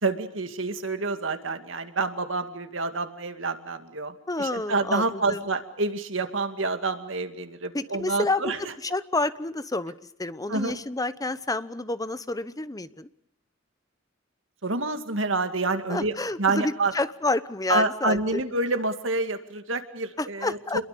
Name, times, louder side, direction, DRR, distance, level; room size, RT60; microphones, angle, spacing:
voice 1, 0.0-8.6 10.5-10.8 14.6-16.1 16.4-16.9 17.7-20.8, right 3 dB, 70° right, 8 dB, 2.3 m, -28 dB
voice 2, 4.3-5.4 7.7-9.9 10.2-13.1 15.9-18.4 20.2-20.8, left 2 dB, 20° left, 14 dB, 0.9 m, -29 dB
27.5 x 22.0 x 6.7 m, 0.72 s
head